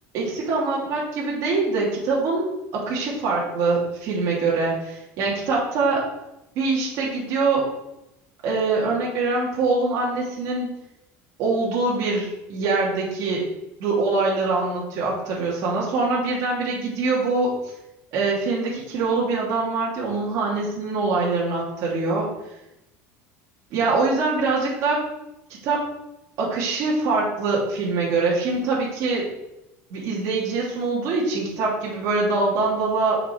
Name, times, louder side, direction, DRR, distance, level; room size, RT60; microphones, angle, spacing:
voice 1, 0.1-6.0 6.5-7.7 8.4-10.7 11.4-13.4 13.8-17.5 18.1-22.3 23.7-25.0 25.6-25.8 26.4-29.2 29.9-33.2, right 3 dB, 55° right, -5 dB, 2.8 m, -23 dB
6.7 x 5.7 x 4.6 m, 0.90 s
cardioid pair, 150°, 7 cm